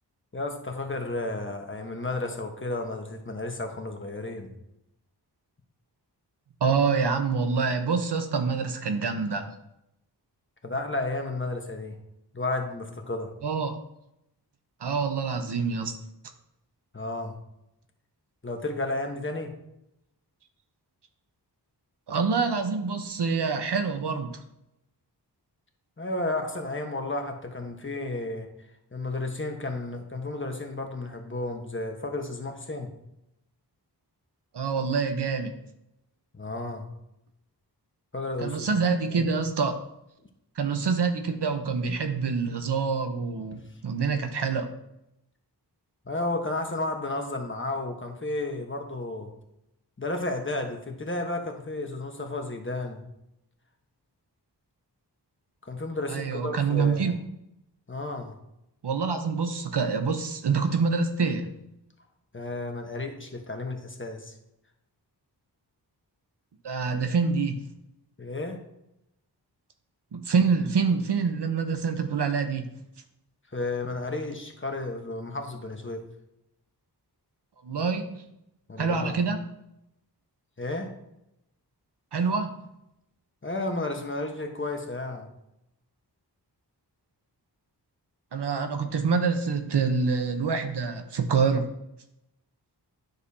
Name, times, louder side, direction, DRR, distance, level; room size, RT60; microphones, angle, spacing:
voice 1, 0.3-4.5 10.6-12.0 12.3-13.3 16.9-17.4 18.4-19.5 26.0-28.5 28.9-32.9 36.3-36.9 38.1-38.7 39.1-39.3 46.1-49.3 50.0-53.0 55.6-57.1 57.9-58.4 62.3-64.4 68.2-68.6 73.5-76.1 78.7-79.2 80.6-80.9 83.4-85.3, left 2 dB, 30° left, 3 dB, 1.2 m, -32 dB
voice 2, 6.6-9.5 13.4-13.8 14.8-15.9 22.1-24.4 34.5-35.6 38.4-39.7 40.6-44.7 56.1-57.1 58.8-61.5 66.6-67.7 70.1-72.7 77.6-78.2 78.8-79.4 82.1-82.7 88.3-91.7, right 5 dB, 75° right, 7 dB, 1.0 m, -26 dB
9.8 x 6.6 x 2.8 m, 0.83 s
wide cardioid pair, 80°, 41 cm